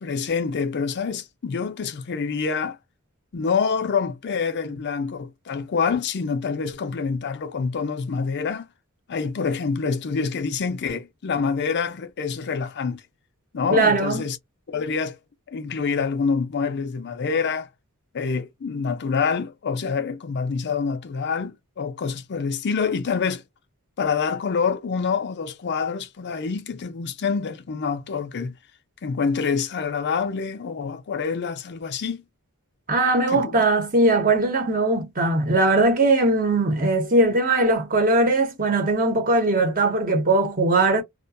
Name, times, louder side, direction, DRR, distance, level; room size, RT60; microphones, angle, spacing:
voice 1, 0.0-2.8 3.3-8.7 9.1-13.0 13.5-14.4 14.7-15.2 15.5-17.7 18.1-23.4 24.0-28.5 29.0-32.2 33.3-33.5, left 5 dB, 50° left, 0.5 m, -26 dB
voice 2, 13.7-14.2 32.9-41.0, right 2 dB, 40° right, 0.9 m, -20 dB
2.4 x 2.2 x 2.5 m
head